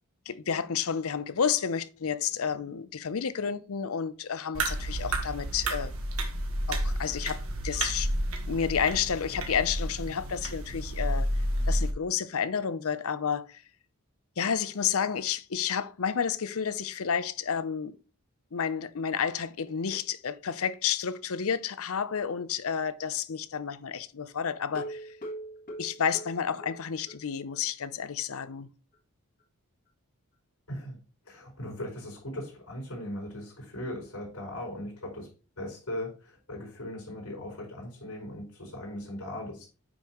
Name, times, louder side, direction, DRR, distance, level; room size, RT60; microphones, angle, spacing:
voice 1, 0.3-5.9 6.7-8.1 8.5-11.3 11.7-13.6 14.4-18.0 18.5-25.1 25.8-28.7, left 7 dB, 75° left, 0.6 m, -30 dB
sound 1, 4.5-11.9, right 1 dB, 70° right, 1.5 m, -31 dB
sound 2, 24.7-27.2 27.5-27.6 28.0-28.1 28.5-28.6, right 1 dB, 40° left, 1.4 m, -41 dB
voice 2, 31.3-35.3 35.6-39.7, left 1 dB, 90° left, 4.7 m, -38 dB
9.4 x 5.4 x 3.0 m
head